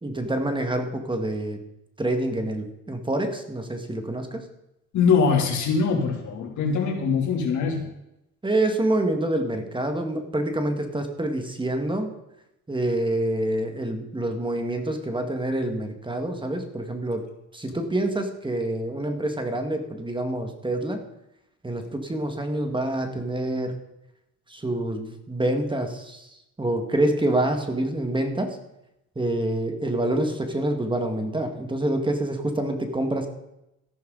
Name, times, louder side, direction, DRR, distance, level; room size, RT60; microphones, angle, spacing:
voice 1, 0.0-1.6 2.0-4.4 8.4-12.1 12.7-17.3 17.5-21.0 21.6-23.8 24.5-26.3 26.6-28.6 29.2-33.3, right 1 dB, 15° right, 5 dB, 1.9 m, -27 dB
voice 2, 4.9-7.9, left 5 dB, 70° left, 1 dB, 3.1 m, -22 dB
14.0 x 11.5 x 4.0 m, 0.87 s
cardioid pair, 90°, 30 cm